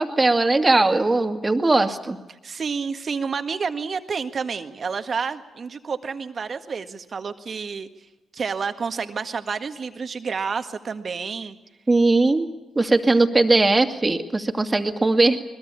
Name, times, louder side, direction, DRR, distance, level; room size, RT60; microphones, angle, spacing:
voice 1, 0.0-2.2 11.9-12.5 12.8-15.4, right 2 dB, 25° right, 6 dB, 2.4 m, -19 dB
voice 2, 2.4-7.9 8.3-11.5, right 5 dB, 50° right, 8 dB, 1.7 m, -29 dB
23.0 x 21.0 x 8.6 m, 1.0 s
hypercardioid pair, 45°, 0 cm